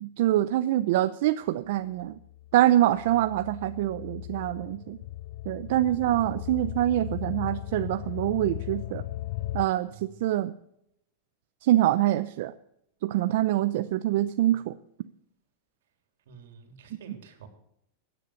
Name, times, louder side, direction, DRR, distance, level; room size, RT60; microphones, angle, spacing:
voice 1, 0.0-2.2 2.5-5.0 5.5-9.0 9.5-9.9 10.2-10.5 11.6-12.5 13.0-14.7, right 14 dB, 55° right, 11 dB, 0.6 m, -25 dB
sound 1, 2.0-9.7, left 15 dB, 50° left, 0.6 m, -37 dB
voice 2, 16.3-17.5, right 6 dB, 75° right, 6 dB, 3.4 m, -49 dB
16.5 x 10.0 x 6.5 m, 0.77 s
supercardioid pair, 165°, 0 cm